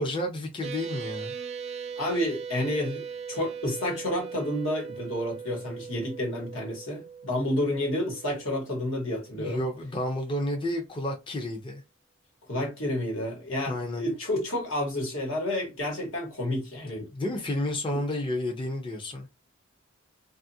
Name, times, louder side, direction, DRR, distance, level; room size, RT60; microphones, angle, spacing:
voice 1, 0.0-1.3 9.3-11.8 13.7-14.1 17.1-19.3, left 1 dB, 25° left, 0.5 m, -31 dB
sound 1, 0.6-9.3, right 6 dB, 35° right, 0.4 m, -39 dB
voice 2, 2.0-9.6 12.5-17.1 17.9-18.0, left 1 dB, 80° left, 1.3 m, -30 dB
2.7 x 2.4 x 2.6 m
head